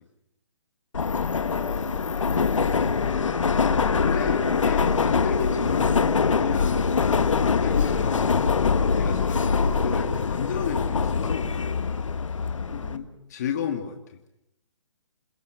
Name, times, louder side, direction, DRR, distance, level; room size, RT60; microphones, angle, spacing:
Subway metro underground, 0.9-13.0, left 5 dB, 90° left, 1.5 m, -23 dB
sound 1, 1.2-11.9, left 11 dB, 20° left, 1.4 m, -40 dB
voice 1, 1.5-2.7 12.4-13.1, right 3 dB, 55° right, 3 dB, 4.3 m, -49 dB
sound 2, 2.1-6.8, equal, ahead, 0.8 m, -49 dB
voice 2, 4.0-8.3 8.9-11.6 12.7-14.0, left 7 dB, 35° left, 5 dB, 2.4 m, -32 dB
28.5 x 17.0 x 8.1 m, 0.83 s
hypercardioid pair, 165°, 16 cm